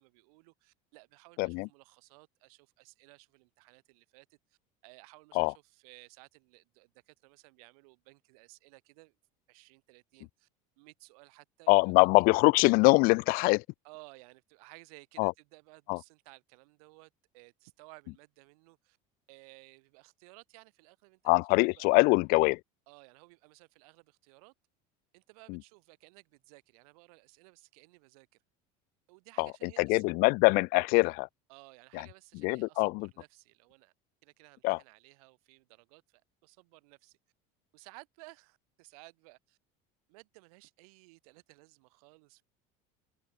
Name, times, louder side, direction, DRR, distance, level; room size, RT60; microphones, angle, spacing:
voice 1, 0.0-9.2 9.5-10.5 10.8-12.1 13.8-19.0 19.3-21.3 21.6-22.0 22.9-24.5 25.1-28.3 29.1-30.0 31.5-33.9 34.2-37.2 37.7-39.6 40.1-42.4, right 27 dB, 90° right, 3.8 m, -57 dB
voice 2, 11.7-13.6 15.2-15.3 15.9-16.0 21.2-22.6 25.5-25.6 29.4-31.3 31.9-32.0 32.4-33.1 34.6-34.8, left 28 dB, 55° left, 0.4 m, -24 dB
open air
cardioid pair, 165°, 18 cm